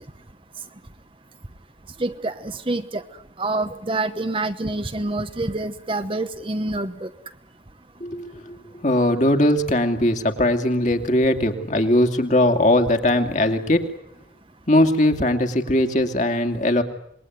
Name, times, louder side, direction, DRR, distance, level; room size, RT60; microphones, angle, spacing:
voice 1, 2.0-3.0 3.4-7.1, right 2 dB, 25° right, 9 dB, 1.1 m, -26 dB
voice 2, 8.0-8.4 8.8-13.8 14.7-16.8, left 1 dB, 40° left, 6 dB, 2.5 m, -20 dB
27.0 x 21.0 x 9.5 m, 0.72 s
head